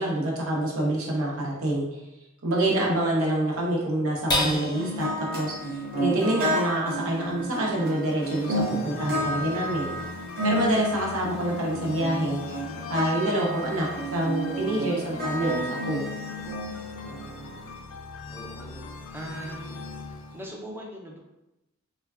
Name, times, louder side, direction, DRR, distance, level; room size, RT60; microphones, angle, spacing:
voice 1, 0.0-1.9 2.4-9.9 10.4-12.6 12.9-16.0, right 1 dB, 85° right, -3 dB, 0.7 m, -27 dB
sound 1, 4.3-11.0 11.5-11.6 12.0-12.5, left 1 dB, 20° left, 0.8 m, -35 dB
sound 2, 4.7-17.7, equal, 45° right, 0.7 m, -31 dB
sound 3, 8.2-20.5, left 4 dB, 90° left, 0.3 m, -41 dB
voice 2, 18.3-18.8 19.1-19.8 20.3-21.2, right 1 dB, 10° right, -1 dB, 0.4 m, -40 dB
3.3 x 2.2 x 2.3 m, 0.93 s
head